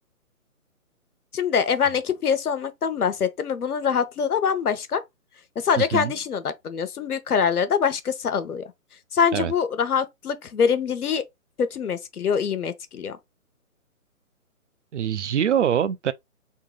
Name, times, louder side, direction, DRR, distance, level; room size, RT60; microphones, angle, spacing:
voice 1, 1.3-5.0 5.6-8.6 9.1-11.2 11.6-13.2, left 7 dB, 85° left, 0.9 m, -24 dB
voice 2, 5.8-6.1 9.3-9.5 14.9-16.1, right 9 dB, 55° right, 0.5 m, -24 dB
3.8 x 2.8 x 3.6 m
hypercardioid pair, 160°, 43 cm